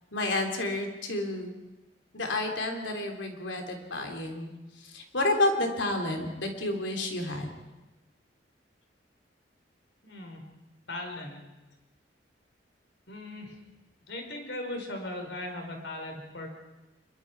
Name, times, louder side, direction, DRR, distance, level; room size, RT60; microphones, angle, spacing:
voice 1, 0.1-1.5 2.1-4.5 4.8-7.6, left 2 dB, 90° left, 3 dB, 3.5 m, -30 dB
voice 2, 10.0-10.4 10.9-11.4 13.1-13.5 14.1-16.5, left 1 dB, 70° left, 3 dB, 4.8 m, -38 dB
26.0 x 23.0 x 4.8 m, 1.1 s
head